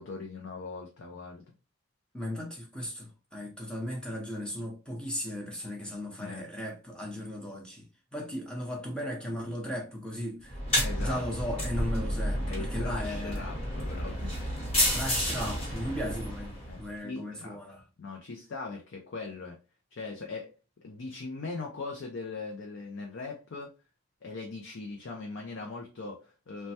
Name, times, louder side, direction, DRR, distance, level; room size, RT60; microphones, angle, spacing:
voice 1, 0.0-1.4 6.2-6.4 10.8-11.2 12.5-14.5 16.7-17.6 18.0-19.6 19.9-20.5 20.8-23.7 24.2-26.7, left 3 dB, 60° left, 0.5 m, -40 dB
voice 2, 2.1-7.8 8.1-10.6 11.0-13.5 14.9-17.8, equal, 5° left, 0.6 m, -36 dB
sound 1, 10.5-16.9, equal, 25° left, 1.0 m, -31 dB
3.2 x 2.1 x 2.7 m
head